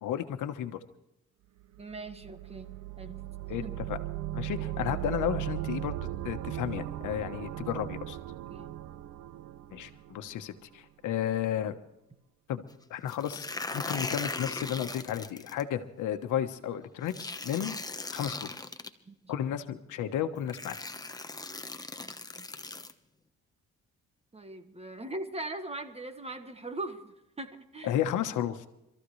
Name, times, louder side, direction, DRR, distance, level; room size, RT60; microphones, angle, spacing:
voice 1, 0.0-0.8 3.5-4.0 4.3-5.9 6.2-8.2 9.7-11.8 12.5-12.6 12.9-17.8 18.1-18.6 19.3-20.8 27.8-28.7, left 10 dB, 80° left, 8 dB, 1.2 m, -33 dB
sound 1, 1.7-10.6, right 14 dB, 70° right, 0.7 m, -38 dB
voice 2, 1.8-2.7 3.0-3.1 3.6-3.7 8.5-8.7 19.1-19.2 22.4-22.5 24.3-27.9, right 2 dB, 20° right, 8 dB, 1.6 m, -40 dB
sound 2, 13.1-15.6 17.1-18.9 19.9-20.0 20.5-22.9, left 3 dB, 10° left, 1.1 m, -38 dB
26.0 x 14.0 x 3.2 m, 0.86 s
cardioid pair, 90°, 30 cm